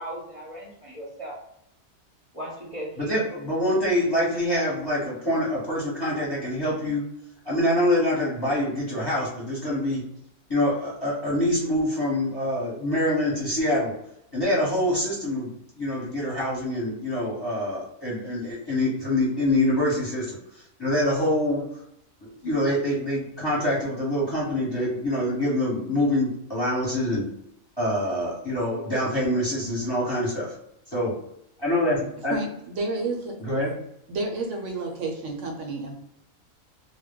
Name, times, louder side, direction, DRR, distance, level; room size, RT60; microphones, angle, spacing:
voice 1, 0.0-1.4 2.3-3.2, equal, 30° right, 0.7 m, -37 dB
voice 2, 3.0-7.0 7.4-10.0 10.5-13.9 14.3-15.5 15.8-21.7 22.4-27.2 27.8-30.5 30.9-31.1 31.6-32.4 33.4-33.7, left 1 dB, 20° left, 0.9 m, -25 dB
voice 3, 32.3-33.4 34.1-35.9, right 3 dB, 70° right, 0.9 m, -30 dB
2.2 x 2.1 x 3.5 m
omnidirectional pair, 1.4 m